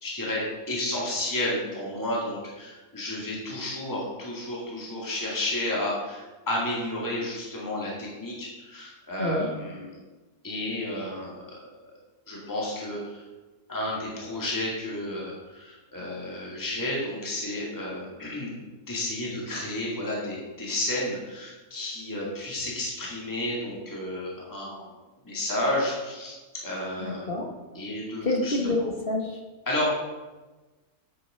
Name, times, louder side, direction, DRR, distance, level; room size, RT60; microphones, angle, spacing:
voice 1, 0.0-9.9 10.4-11.6 12.3-13.2 13.7-18.5 18.9-24.9 25.2-26.4 26.6-27.3 27.7-28.6 29.7-30.0, left 1 dB, 10° left, -4 dB, 2.1 m, -31 dB
voice 2, 27.0-27.5 28.2-29.4, left 2 dB, 40° left, 1 dB, 1.2 m, -27 dB
8.7 x 6.4 x 5.5 m, 1.2 s
omnidirectional pair, 1.6 m